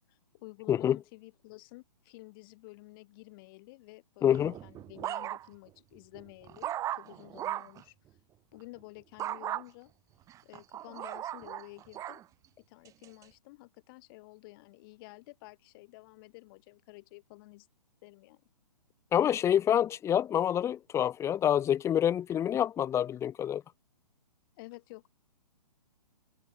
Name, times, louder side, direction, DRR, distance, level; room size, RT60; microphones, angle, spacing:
voice 1, 0.0-7.9 8.5-9.9 10.4-12.2 12.7-17.7 18.0-18.4 24.6-25.1, left 23 dB, 35° left, 4.1 m, -51 dB
voice 2, 4.2-4.6 19.1-23.6, left 10 dB, 15° left, 1.1 m, -27 dB
sound 1, 4.3-5.7 6.1-7.8 9.2-9.6 10.3-12.2 12.8-13.2, right 12 dB, 15° right, 1.0 m, -37 dB
figure-of-eight pair, 125°, 21 cm